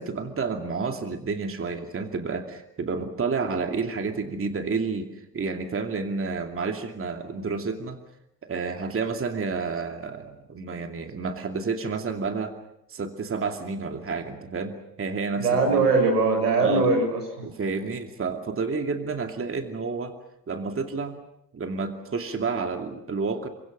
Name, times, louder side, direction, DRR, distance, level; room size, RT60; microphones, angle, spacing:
voice 1, 0.0-8.0 8.4-12.6 12.9-15.8 16.6-16.9 17.4-20.1 20.5-21.2 21.5-23.5, right 4 dB, 25° right, 5 dB, 2.6 m, -30 dB
voice 2, 15.4-17.4, right 3 dB, 80° right, 4 dB, 6.2 m, -21 dB
29.0 x 24.5 x 6.3 m, 0.78 s
figure-of-eight pair, 60°, 48 cm